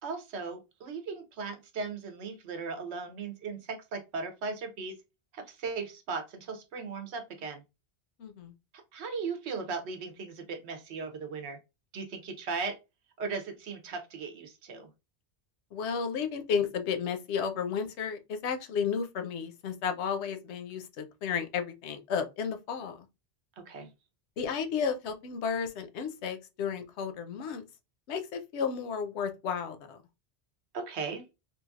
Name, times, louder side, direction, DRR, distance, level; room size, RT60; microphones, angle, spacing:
voice 1, 0.0-5.0 5.3-7.6 8.9-11.6 11.9-12.8 13.2-14.9 23.6-23.9 30.7-31.3, right 4 dB, 80° right, 1.0 m, -37 dB
voice 2, 8.2-8.5 15.7-23.1 24.4-27.6 28.1-30.0, left 6 dB, 90° left, 0.9 m, -33 dB
3.2 x 2.6 x 2.3 m
omnidirectional pair, 1.1 m